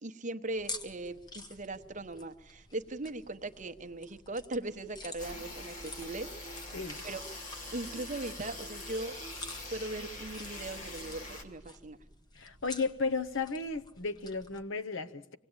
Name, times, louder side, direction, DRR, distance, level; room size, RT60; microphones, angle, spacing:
voice 1, 0.0-6.6 7.0-7.2 7.7-9.2 9.7-12.0, right 2 dB, 35° right, 0.9 m, -39 dB
sound 1, 0.6-14.6, left 2 dB, 20° left, 1.0 m, -49 dB
sound 2, 5.2-11.4, left 1 dB, 35° left, 2.5 m, -43 dB
voice 2, 12.3-15.4, left 4 dB, 60° left, 0.9 m, -34 dB
25.0 x 18.0 x 8.8 m
head